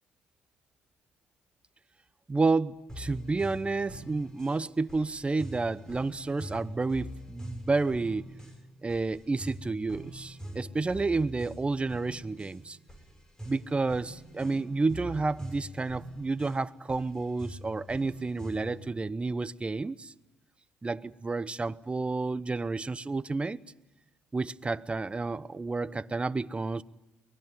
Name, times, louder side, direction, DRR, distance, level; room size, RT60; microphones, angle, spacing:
voice 1, 2.3-8.2 8.8-12.8 13.5-20.1 20.8-23.6 24.3-26.8, right 3 dB, 25° right, 1.0 m, -30 dB
sound 1, 2.9-18.9, equal, 10° left, 6.2 m, -44 dB
23.5 x 20.0 x 9.2 m
supercardioid pair, 70°, 5 cm